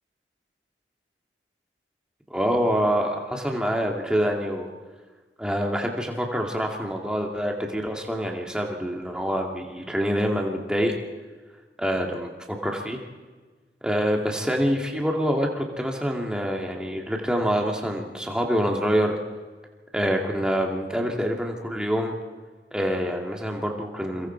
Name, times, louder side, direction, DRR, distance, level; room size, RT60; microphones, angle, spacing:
voice 1, 2.3-4.7 5.4-10.9 11.8-13.0 13.8-19.1 19.9-22.1 22.7-24.3, equal, 5° right, 0 dB, 2.3 m, -26 dB
28.0 x 23.5 x 4.6 m, 1.4 s
head